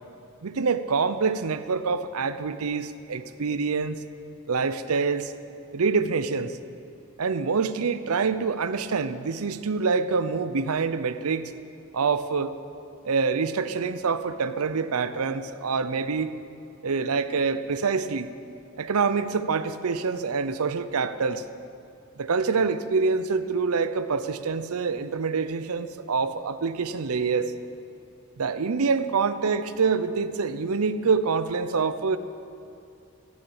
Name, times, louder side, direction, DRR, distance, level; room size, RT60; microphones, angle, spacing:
voice 1, 0.4-4.0 4.5-5.3 5.7-6.6 7.2-11.5 11.9-12.5 13.0-16.3 16.8-18.3 18.8-21.4 22.2-27.5 28.4-32.2, right 5 dB, 85° right, 12 dB, 0.6 m, -26 dB
14.5 x 7.1 x 8.6 m, 2.7 s
head